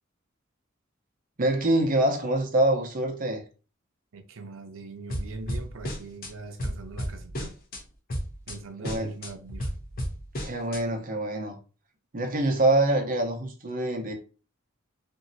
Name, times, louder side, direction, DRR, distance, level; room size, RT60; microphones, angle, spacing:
voice 1, 1.4-3.4 8.8-9.1 10.4-11.6 12.1-14.1, right 1 dB, 45° right, 0.7 m, -25 dB
voice 2, 4.1-7.6 8.5-9.7, right 3 dB, 80° right, 0.5 m, -41 dB
sound 1, 5.1-6.3 6.6-7.8 8.1-8.6 8.8-10.8, equal, 45° left, 0.8 m, -33 dB
3.0 x 2.7 x 2.6 m
head